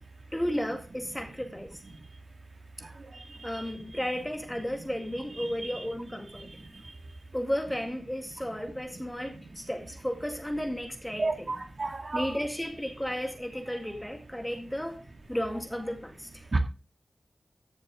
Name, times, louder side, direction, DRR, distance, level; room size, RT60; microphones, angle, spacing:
voice 1, 0.3-1.7 3.4-6.5 7.3-11.5 12.1-15.0 15.3-16.4, equal, 5° left, 2.1 m, -33 dB
voice 2, 5.4-5.8 11.2-12.3 16.5-16.6, right 3 dB, 50° right, 2.1 m, -31 dB
14.5 x 6.8 x 3.7 m
wide cardioid pair, 100°, 0 cm